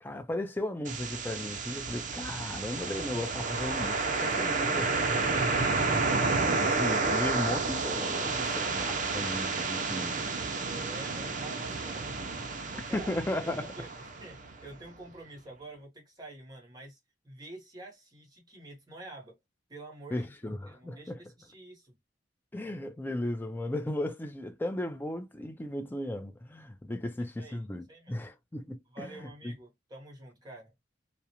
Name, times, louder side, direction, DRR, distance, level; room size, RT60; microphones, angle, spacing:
voice 1, 0.0-5.0 5.8-5.9 6.3-10.2 12.9-13.7 20.1-21.2 22.5-29.5, left 1 dB, 10° left, 0.4 m, -36 dB
sound 1, 0.9-14.7, right 3 dB, 45° right, 0.5 m, -31 dB
voice 2, 5.5-6.1 10.6-13.1 13.4-17.0 17.2-19.4 19.7-22.0 27.4-27.6 27.9-28.2 28.9-30.7, right 2 dB, 20° right, 1.0 m, -48 dB
2.4 x 2.1 x 2.8 m
head